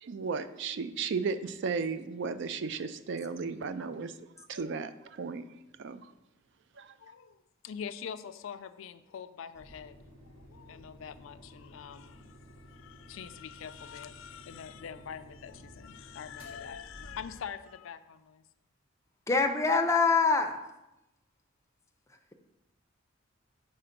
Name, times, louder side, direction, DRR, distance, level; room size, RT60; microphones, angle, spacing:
voice 1, 0.0-4.1 4.5-5.4 5.8-6.0 6.8-6.9, right 5 dB, 60° right, 12 dB, 0.4 m, -34 dB
voice 2, 7.0-10.0 10.4-18.4, left 7 dB, 70° left, 11 dB, 0.4 m, -44 dB
sound 1, 9.5-17.6, equal, 80° right, 1.9 m, -53 dB
voice 3, 19.3-20.6, left 4 dB, 15° left, 5 dB, 0.5 m, -25 dB
5.0 x 4.3 x 5.8 m, 0.93 s
head